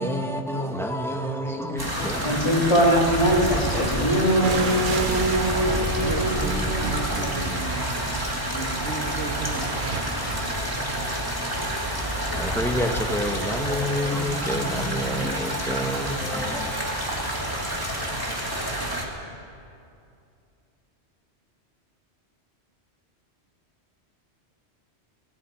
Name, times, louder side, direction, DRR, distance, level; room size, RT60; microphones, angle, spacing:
voice 1, 0.0-2.6 3.5-3.6 3.9-4.1 12.3-16.7, equal, ahead, 1.7 m, -28 dB
sound 1, 1.8-19.0, right 1 dB, 20° right, 2.7 m, -28 dB
voice 2, 2.2-7.0 7.3-7.7, equal, 30° left, 3.5 m, -23 dB
sound 2, 4.4-10.0, right 5 dB, 50° right, 1.1 m, -35 dB
voice 3, 5.6-8.1 8.5-9.7, right 3 dB, 85° right, 2.0 m, -34 dB
20.0 x 17.0 x 9.0 m
omnidirectional pair, 1.1 m